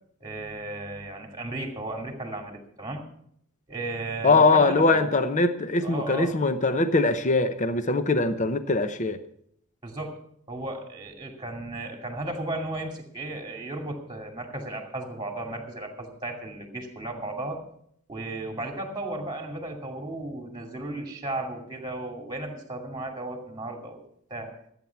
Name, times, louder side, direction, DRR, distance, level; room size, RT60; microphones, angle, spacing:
voice 1, 0.2-3.0 3.7-5.1 5.8-6.4 9.8-10.2 10.5-17.6 18.1-24.0 24.3-24.6, right 2 dB, 20° right, 3 dB, 2.4 m, -35 dB
voice 2, 4.2-9.2, left 3 dB, 35° left, 10 dB, 0.8 m, -22 dB
14.5 x 8.9 x 5.8 m, 0.70 s
head